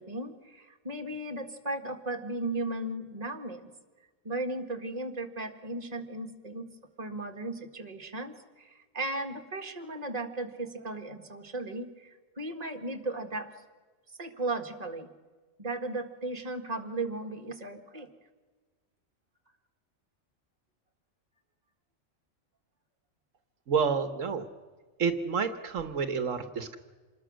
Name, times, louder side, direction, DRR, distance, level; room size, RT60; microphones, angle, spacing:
voice 1, 0.0-3.7 4.2-6.7 7.0-13.5 14.2-15.1 15.6-18.1, right 2 dB, 30° right, 5 dB, 1.8 m, -36 dB
voice 2, 23.7-24.5 25.0-26.8, right 6 dB, 80° right, 10 dB, 1.5 m, -29 dB
27.0 x 20.5 x 6.3 m, 1.4 s
omnidirectional pair, 1.3 m